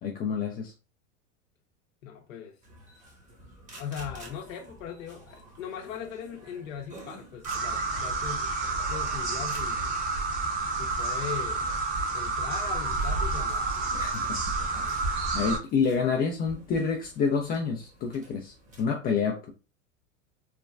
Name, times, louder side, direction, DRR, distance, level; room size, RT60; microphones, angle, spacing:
voice 1, 0.0-0.7 14.0-14.4 15.3-19.5, left 5 dB, 25° left, 0.4 m, -28 dB
voice 2, 2.0-2.6 3.8-8.5 8.8-10.0 10.8-11.6 12.1-13.7, left 8 dB, 80° left, 0.7 m, -39 dB
sound 1, 2.6-18.8, right 1 dB, 20° right, 0.9 m, -49 dB
sound 2, 7.4-15.6, right 3 dB, 45° right, 1.0 m, -29 dB
3.2 x 2.2 x 2.4 m
hypercardioid pair, 110°, 39 cm